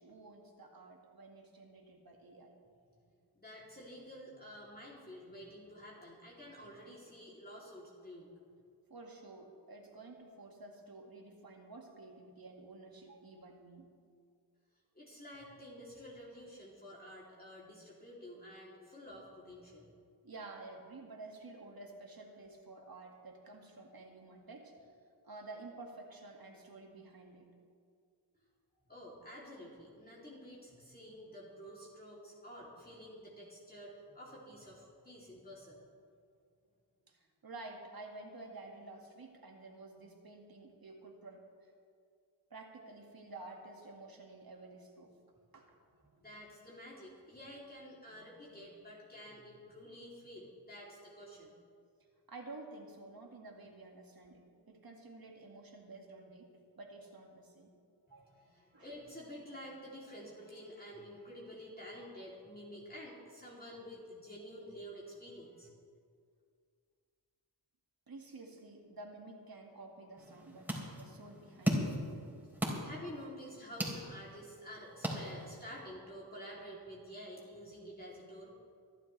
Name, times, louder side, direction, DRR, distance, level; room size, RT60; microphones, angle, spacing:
voice 1, 0.0-2.5 8.9-13.9 20.2-24.9 25.2-27.5 37.1-41.7 42.5-45.1 45.5-45.8 52.3-56.5 56.8-57.7 58.1-58.3 58.7-58.9 68.1-72.0 75.2-75.5, right 2 dB, 55° right, 1 dB, 2.2 m, -51 dB
voice 2, 3.3-8.3 14.9-19.9 28.9-35.8 46.0-51.5 58.1-65.7 72.2-72.4 72.8-78.5, equal, 20° left, -5 dB, 3.1 m, -50 dB
sound 1, 70.2-75.8, equal, 5° right, 3.9 m, -38 dB
24.5 x 11.5 x 3.3 m, 2.2 s
cardioid pair, 70°, 43 cm